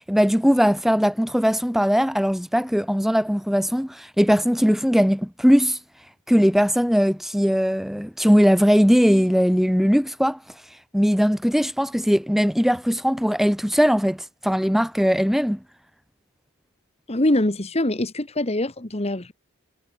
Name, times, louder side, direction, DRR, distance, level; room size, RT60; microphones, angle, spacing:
voice 1, 0.0-5.8 6.3-10.4 10.9-15.6, equal, ahead, 2.6 m, -19 dB
voice 2, 17.1-19.3, left 1 dB, 30° left, 1.5 m, -23 dB
head